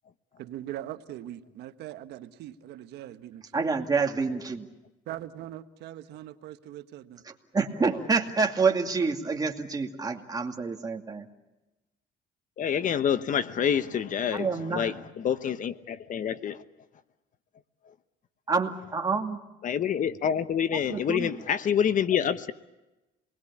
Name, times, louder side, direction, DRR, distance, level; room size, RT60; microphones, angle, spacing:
voice 1, 0.4-3.4 5.1-7.2, right 13 dB, 80° right, 10 dB, 1.3 m, -41 dB
voice 2, 3.5-4.7 7.2-11.3 14.3-14.9 18.5-19.4 20.9-21.3, right 4 dB, 20° right, 2 dB, 2.4 m, -27 dB
voice 3, 12.6-16.6 19.6-22.5, left 8 dB, 50° left, 13 dB, 1.0 m, -27 dB
27.5 x 20.5 x 8.5 m, 1.0 s
cardioid pair, 110°, 17 cm